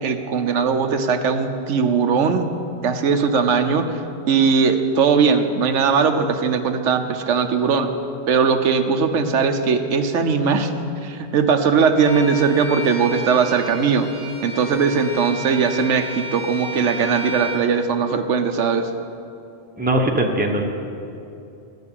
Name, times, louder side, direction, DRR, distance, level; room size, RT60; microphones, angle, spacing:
voice 1, 0.0-2.5 2.8-3.9 4.3-7.9 8.3-10.7 11.0-14.1 14.4-18.9, right 5 dB, 85° right, 7 dB, 1.1 m, -19 dB
Bowed string instrument, 12.0-17.7, right 1 dB, 85° left, 2.5 m, -33 dB
voice 2, 19.8-20.6, right 1 dB, 10° right, 1 dB, 0.9 m, -20 dB
13.0 x 6.7 x 8.7 m, 2.7 s
omnidirectional pair, 1.2 m